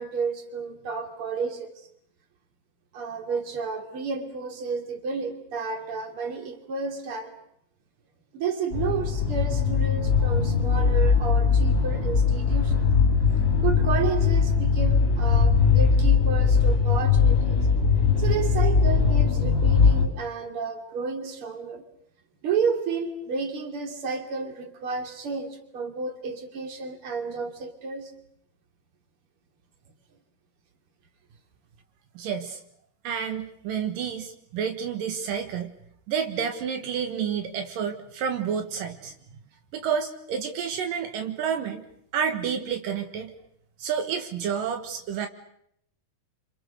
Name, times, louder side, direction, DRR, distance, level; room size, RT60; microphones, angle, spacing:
voice 1, 0.0-1.9 2.9-7.3 8.3-12.8 13.6-17.6 18.2-21.8 22.4-28.1, right 5 dB, 40° right, 5 dB, 3.5 m, -31 dB
sound 1, 8.7-20.1, left 5 dB, 30° left, 3.3 m, -21 dB
voice 2, 32.2-32.6 33.0-35.7 36.1-39.1 39.7-41.9 42.1-43.3 43.8-45.3, right 7 dB, 75° right, 6 dB, 3.1 m, -29 dB
27.5 x 27.0 x 6.6 m, 0.72 s
omnidirectional pair, 3.9 m